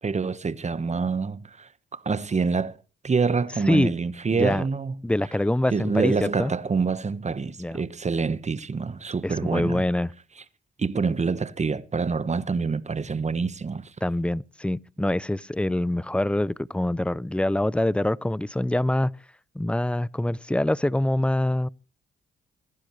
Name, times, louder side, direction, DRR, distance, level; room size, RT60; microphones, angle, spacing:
voice 1, 0.0-2.8 3.0-5.0 5.7-9.8 10.8-13.9, right 5 dB, 30° right, 1.3 m, -26 dB
voice 2, 4.3-4.7 5.0-6.5 7.6-7.8 9.2-10.1 14.0-19.1 19.5-21.7, left 1 dB, 5° left, 0.6 m, -25 dB
26.0 x 12.0 x 3.2 m
hypercardioid pair, 50°, 21 cm